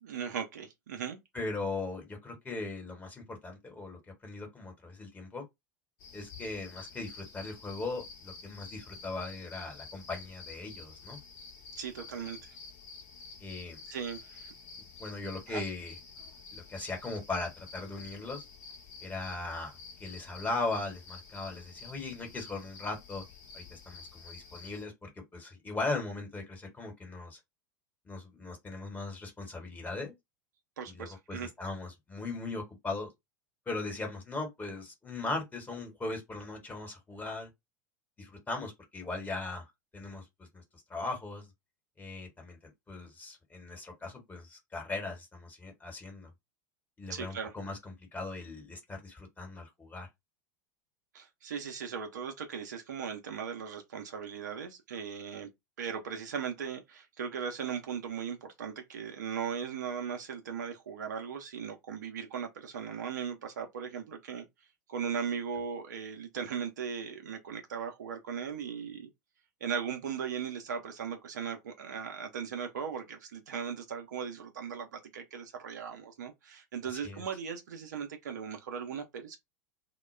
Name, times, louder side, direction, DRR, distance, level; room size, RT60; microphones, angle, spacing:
voice 1, 0.0-1.2 11.8-12.6 13.9-14.5 15.5-15.6 30.8-31.5 47.1-47.5 51.1-55.5 55.8-64.4 64.9-69.1 69.6-79.4, right 7 dB, 65° right, 0.6 m, -38 dB
voice 2, 1.3-5.4 6.1-11.2 13.4-13.8 15.0-15.9 16.5-18.4 19.0-23.2 23.5-27.4 28.0-30.1 30.8-33.1 33.7-37.5 38.2-39.7 39.9-41.5 42.0-42.6 42.9-46.3 47.0-50.1 77.0-77.2, left 3 dB, 15° left, 1.1 m, -39 dB
sound 1, 6.0-24.9, left 4 dB, 45° left, 0.8 m, -50 dB
2.2 x 2.2 x 3.2 m
figure-of-eight pair, 80°, 10 cm